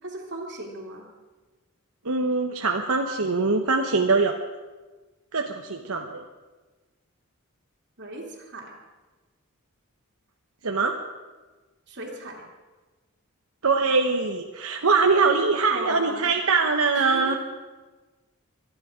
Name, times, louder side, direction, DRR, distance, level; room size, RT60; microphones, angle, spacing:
voice 1, 0.0-1.1 8.0-8.7 11.9-12.4 15.7-16.3 16.9-17.4, right 1 dB, 50° right, -1 dB, 2.6 m, -37 dB
voice 2, 2.0-4.4 5.3-6.2 10.6-11.0 13.6-17.4, right 4 dB, 70° right, 3 dB, 1.0 m, -23 dB
24.5 x 10.5 x 5.1 m, 1.3 s
head